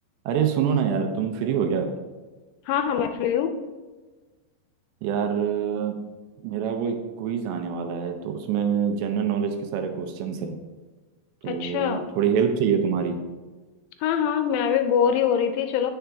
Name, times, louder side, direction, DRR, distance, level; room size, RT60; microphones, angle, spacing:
voice 1, 0.3-1.9 5.0-6.0 6.4-10.6 11.4-13.2, right 7 dB, 80° right, 5 dB, 2.7 m, -25 dB
voice 2, 2.7-3.5 11.5-12.0 14.0-15.9, left 8 dB, 85° left, 7 dB, 2.7 m, -23 dB
8.8 x 6.7 x 3.4 m, 1.3 s
omnidirectional pair, 5.2 m